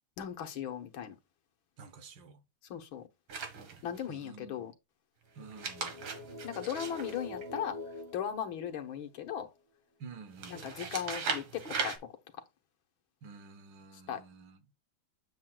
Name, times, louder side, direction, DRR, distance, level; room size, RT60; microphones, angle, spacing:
voice 1, 0.2-1.1 2.7-3.0 3.8-4.7 6.4-7.8 8.1-9.5 10.5-12.0 14.1-14.2, left 9 dB, 80° left, 1.9 m, -37 dB
voice 2, 1.8-2.4 4.1-4.6 5.4-6.0 10.0-10.7 13.2-14.6, right 4 dB, 65° right, 1.6 m, -50 dB
sound 1, 3.3-4.1 5.4-8.0 10.4-12.0, right 5 dB, 85° right, 2.2 m, -38 dB
sound 2, 5.4-9.2, left 2 dB, 15° right, 3.6 m, -45 dB
8.5 x 7.5 x 2.3 m
omnidirectional pair, 2.2 m